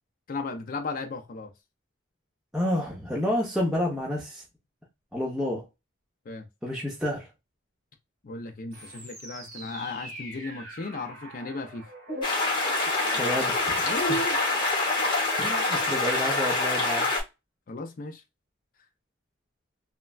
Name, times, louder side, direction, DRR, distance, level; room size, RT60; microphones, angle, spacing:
voice 1, 0.3-1.5 6.3-6.5 8.2-11.9 13.8-14.4 17.7-18.2, left 2 dB, 45° left, 0.4 m, -35 dB
voice 2, 2.5-4.4 5.1-5.6 6.6-7.3 13.1-13.8 15.4-17.1, left 1 dB, 5° right, 0.7 m, -29 dB
sound 1, 8.7-14.4, equal, 45° right, 1.7 m, -43 dB
sound 2, 12.2-17.2, left 2 dB, 20° left, 1.0 m, -26 dB
3.1 x 2.2 x 2.3 m
head